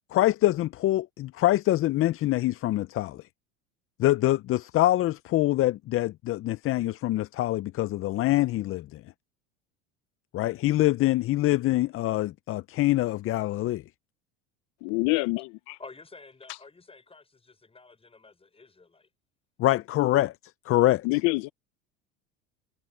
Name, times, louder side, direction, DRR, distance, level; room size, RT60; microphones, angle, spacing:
voice 1, 0.1-3.2 4.0-9.0 10.3-13.8 19.6-20.3 20.7-21.0, left 15 dB, 40° left, 0.6 m, -25 dB
voice 2, 14.8-15.8 16.5-16.6 21.0-21.5, left 25 dB, 70° left, 0.8 m, -26 dB
voice 3, 15.8-19.1, left 3 dB, 15° left, 6.2 m, -50 dB
supercardioid pair, 95°, 33 cm